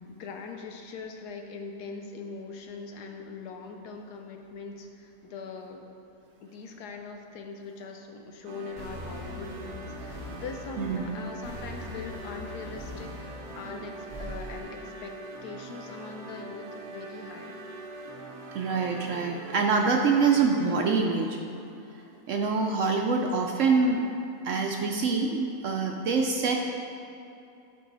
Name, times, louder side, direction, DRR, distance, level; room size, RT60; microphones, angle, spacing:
voice 1, 0.1-5.8 6.4-15.1 15.4-17.5, left 4 dB, 85° left, 3 dB, 1.3 m, -41 dB
sound 1, 8.5-21.1, right 3 dB, 90° right, 1.3 m, -43 dB
sound 2, 8.7-14.6, left 1 dB, 40° left, 1.7 m, -42 dB
voice 2, 18.5-21.4 22.3-24.0 24.4-26.6, right 4 dB, 65° right, 2 dB, 0.8 m, -25 dB
11.5 x 4.8 x 4.0 m, 2.7 s
omnidirectional pair, 1.7 m